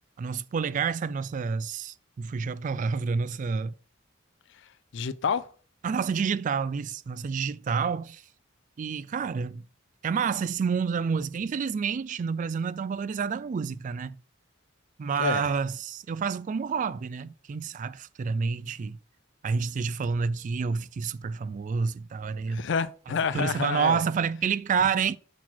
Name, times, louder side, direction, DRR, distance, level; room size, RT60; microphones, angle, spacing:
voice 1, 0.2-3.7 5.8-8.2 8.8-9.6 10.0-14.2 15.0-19.0 19.4-22.6 23.3-25.2, right 5 dB, 40° right, 0.3 m, -29 dB
voice 2, 4.9-5.5 15.2-15.5 22.5-24.0, left 6 dB, 65° left, 0.4 m, -28 dB
5.9 x 4.1 x 4.4 m
head